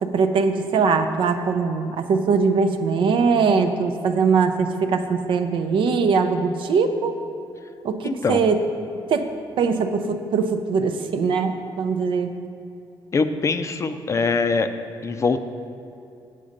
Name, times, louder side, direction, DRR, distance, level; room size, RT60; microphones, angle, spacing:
voice 1, 0.0-7.1 7.8-8.6 9.1-9.3 9.6-12.3, right 5 dB, 70° right, 7 dB, 0.6 m, -21 dB
voice 2, 8.0-8.4 13.1-14.7 15.0-15.4, left 4 dB, 35° left, 9 dB, 0.5 m, -22 dB
8.5 x 6.6 x 5.1 m, 2.6 s
cardioid pair, 110°, 9 cm